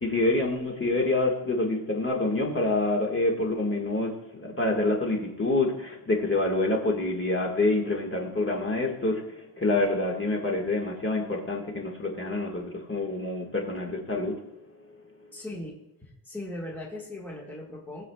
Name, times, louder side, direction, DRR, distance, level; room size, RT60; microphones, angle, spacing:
voice 1, 0.0-4.1 4.4-9.2 9.6-14.3, left 2 dB, 25° left, 0 dB, 1.7 m, -27 dB
voice 2, 15.3-18.1, left 1 dB, 5° left, -3 dB, 1.6 m, -39 dB
19.5 x 7.3 x 2.3 m, 0.85 s
wide cardioid pair, 140°, 49 cm